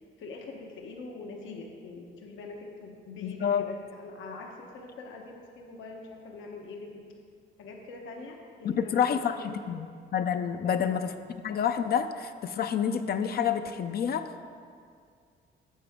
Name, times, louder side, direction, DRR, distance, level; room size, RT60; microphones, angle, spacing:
voice 1, 0.0-7.1 7.6-9.8 10.6-10.9, left 3 dB, 80° left, 1 dB, 1.1 m, -44 dB
voice 2, 3.2-3.7 8.6-9.9 10.1-11.1 11.4-14.4, left 8 dB, 50° left, 9 dB, 0.5 m, -28 dB
9.9 x 7.6 x 3.6 m, 2.2 s
cardioid pair, 90°, 20 cm